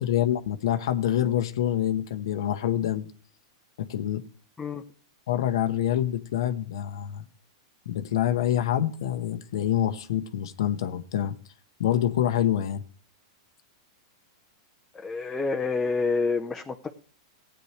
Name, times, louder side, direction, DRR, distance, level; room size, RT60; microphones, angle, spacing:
voice 1, 0.0-3.1 3.8-4.2 5.3-7.2 7.9-11.3 11.8-12.8, left 11 dB, 70° left, 9 dB, 0.9 m, -26 dB
voice 2, 14.9-16.9, left 4 dB, 10° left, 3 dB, 0.8 m, -28 dB
15.0 x 9.1 x 3.3 m, 0.40 s
hypercardioid pair, 125°, 3 cm